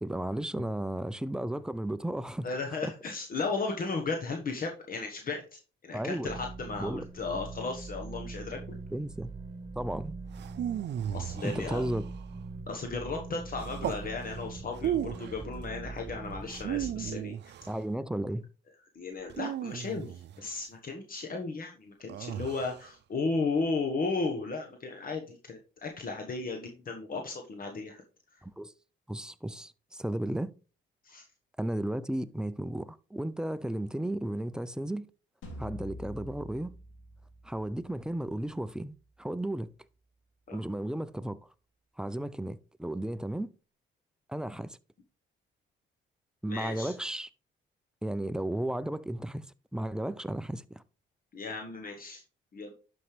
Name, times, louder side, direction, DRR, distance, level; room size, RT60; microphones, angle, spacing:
voice 1, 0.0-2.5 2.8-2.9 5.9-6.3 6.8-7.0 8.9-9.3 9.8-10.1 11.4-12.0 17.7-18.5 28.4-28.7 29.1-30.5 31.6-35.1 35.6-36.8 37.4-39.7 40.5-41.4 42.0-43.5 44.3-44.8 46.4-47.3 48.0-50.8, right 1 dB, 5° right, 0.4 m, -34 dB
voice 2, 2.4-8.8 11.1-11.8 12.7-17.3 18.9-28.0 28.3-28.4 31.0-31.2 40.5-40.6 46.5-46.9 51.3-52.2 52.5-52.7, left 3 dB, 45° left, 1.3 m, -35 dB
sound 1, 6.3-17.1, right 3 dB, 20° right, 3.6 m, -42 dB
sound 2, 10.3-12.3 13.6-14.1 14.7-15.4 16.5-17.8 19.3-20.5 22.1-22.9, right 10 dB, 60° right, 0.6 m, -35 dB
sound 3, 35.4-40.5, left 1 dB, 80° left, 2.8 m, -48 dB
11.5 x 5.3 x 3.3 m
cardioid pair, 90°, 20 cm